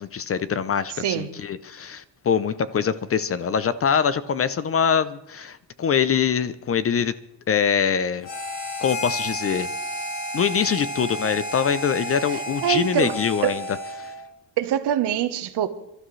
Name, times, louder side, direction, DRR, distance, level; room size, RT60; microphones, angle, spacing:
voice 1, 0.0-7.1 7.5-8.3 8.8-9.7 10.3-13.6 14.0-14.1, left 7 dB, 35° left, 0.5 m, -24 dB
Harmonica, 8.2-14.2, equal, 75° left, 6.9 m, -32 dB
voice 2, 12.3-13.2 13.4-13.5 14.6-15.7, right 10 dB, 65° right, 1.1 m, -24 dB
29.0 x 12.5 x 3.2 m
cardioid pair, 145°, 44 cm